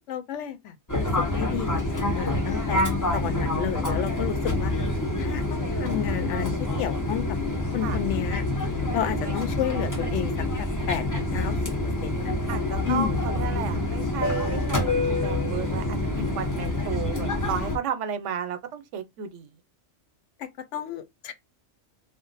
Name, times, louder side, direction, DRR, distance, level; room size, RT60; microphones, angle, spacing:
voice 1, 0.1-1.7 1.9-2.9 3.1-4.7 5.2-6.5 6.8-7.2 7.7-8.4 8.9-10.3 10.6-11.6 12.0-12.3 12.8-13.2 20.4-21.3, left 10 dB, 85° left, 0.9 m, -31 dB
Fixed-wing aircraft airplane, 0.9-17.8, left 2 dB, 20° left, 0.7 m, -27 dB
voice 2, 12.5-19.5, right 7 dB, 85° right, 1.0 m, -33 dB
2.5 x 2.0 x 3.9 m
omnidirectional pair, 1.2 m